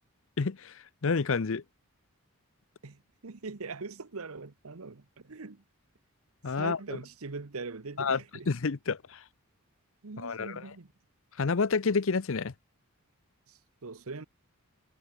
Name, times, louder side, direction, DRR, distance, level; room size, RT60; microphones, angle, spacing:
voice 1, 0.4-1.6 6.4-6.8 8.0-8.2 8.5-9.2 10.2-10.6 11.4-12.5, left 4 dB, 60° left, 0.6 m, -29 dB
voice 2, 2.8-5.6 6.6-8.5 10.0-10.9 13.5-14.3, right 4 dB, 70° right, 1.0 m, -42 dB
head